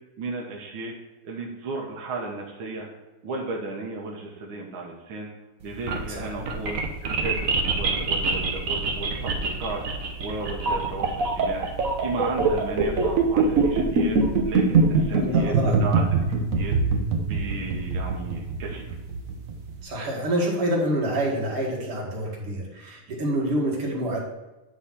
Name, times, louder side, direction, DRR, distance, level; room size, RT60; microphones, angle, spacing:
voice 1, 0.2-0.9 1.2-2.9 3.2-5.3 5.6-11.7 12.0-14.2 14.4-16.0 16.6-16.7 17.3-19.0, right 3 dB, 70° right, -1 dB, 2.0 m, -34 dB
sound 1, 5.6-19.7, right 4 dB, 50° right, 1.1 m, -23 dB
voice 2, 6.1-6.5 15.1-15.8 19.8-24.2, right 1 dB, 90° right, -3 dB, 2.7 m, -27 dB
9.8 x 3.9 x 5.8 m, 1.1 s
omnidirectional pair, 2.4 m